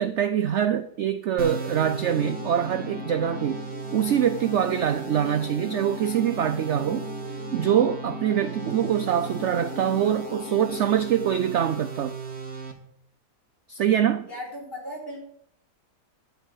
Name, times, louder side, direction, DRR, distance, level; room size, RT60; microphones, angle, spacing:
voice 1, 0.0-3.6 3.9-7.1 7.5-12.2 13.7-14.3, right 9 dB, 65° right, 0.7 m, -24 dB
sound 1, 1.4-12.7, right 5 dB, 40° right, 1.9 m, -37 dB
sound 2, 1.8-10.9, left 10 dB, 70° left, 0.7 m, -40 dB
voice 2, 14.3-15.2, left 1 dB, 35° left, 4.1 m, -36 dB
11.5 x 6.1 x 7.9 m
omnidirectional pair, 1.8 m